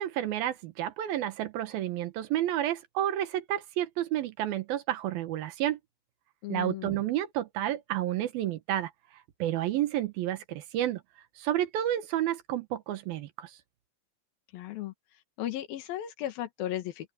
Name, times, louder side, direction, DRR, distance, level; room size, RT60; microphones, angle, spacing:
voice 1, 0.0-5.8 6.5-8.9 9.4-11.0 11.4-13.6, right 12 dB, 85° right, 3.1 m, -30 dB
voice 2, 6.4-7.0 14.5-14.9 15.4-17.1, left 12 dB, 85° left, 3.4 m, -35 dB
open air
omnidirectional pair, 4.1 m